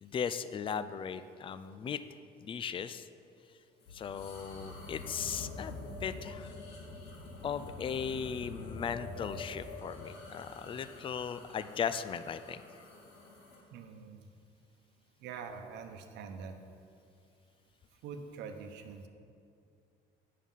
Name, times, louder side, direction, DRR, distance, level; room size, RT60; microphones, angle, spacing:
voice 1, 0.0-2.0 2.4-3.1 3.9-6.5 7.4-12.6, left 7 dB, 30° left, 12 dB, 0.4 m, -37 dB
sound 1, 3.8-13.6, left 3 dB, 75° left, 2.0 m, -46 dB
voice 2, 13.7-14.2 15.2-16.5 18.0-19.1, right 5 dB, 85° right, 7 dB, 0.9 m, -44 dB
9.2 x 6.5 x 5.5 m, 2.4 s
cardioid pair, 110°, 17 cm